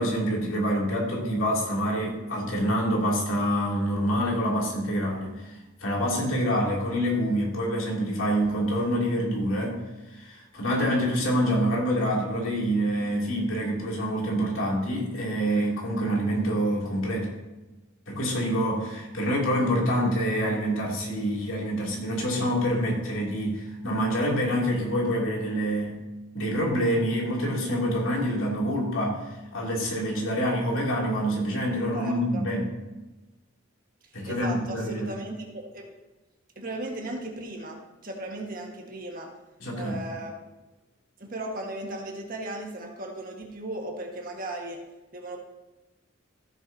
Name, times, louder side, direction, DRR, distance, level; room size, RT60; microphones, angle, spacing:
voice 1, 0.0-9.8 10.1-17.3 18.1-26.0 26.3-32.7 34.1-35.1 39.6-40.0, equal, 85° left, -3 dB, 2.7 m, -26 dB
voice 2, 31.9-32.4 34.3-35.8 36.5-39.3 39.7-40.3 41.2-44.8 45.1-45.4, right 1 dB, 45° right, 1 dB, 1.6 m, -36 dB
14.5 x 7.1 x 2.8 m, 1.1 s
head